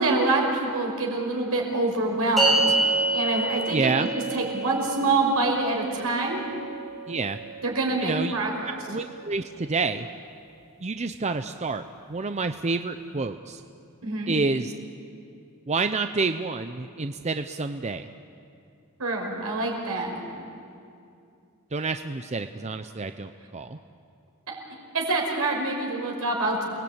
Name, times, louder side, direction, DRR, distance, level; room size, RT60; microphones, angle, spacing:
voice 1, 0.0-2.8 3.1-6.4 7.6-8.8 14.0-14.4 19.0-20.1 24.9-26.6, right 2 dB, 80° right, 0 dB, 5.6 m, -26 dB
sound 1, 2.4-8.9, right 2 dB, ahead, 5.9 m, -28 dB
voice 2, 3.7-4.1 7.1-7.4 8.0-8.3 8.9-10.1 10.8-11.8 12.1-13.6 14.3-14.7 15.7-18.1 21.7-23.8, right 3 dB, 30° right, 8 dB, 0.6 m, -28 dB
28.5 x 20.0 x 8.8 m, 2.5 s
head